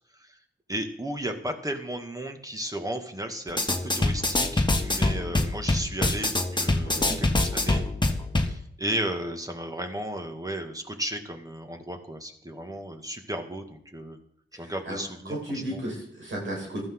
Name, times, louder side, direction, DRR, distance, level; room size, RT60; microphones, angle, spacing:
voice 1, 0.7-7.8 8.5-14.2 14.5-15.8, right 1 dB, 20° right, 5 dB, 2.3 m, -34 dB
sound 1, 3.5-8.5, left 2 dB, 25° left, 1.6 m, -25 dB
voice 2, 6.8-7.2 14.6-15.0 15.3-16.9, right 1 dB, 80° right, -1 dB, 5.3 m, -34 dB
15.0 x 13.5 x 4.0 m, 0.69 s
cardioid pair, 45°, 19 cm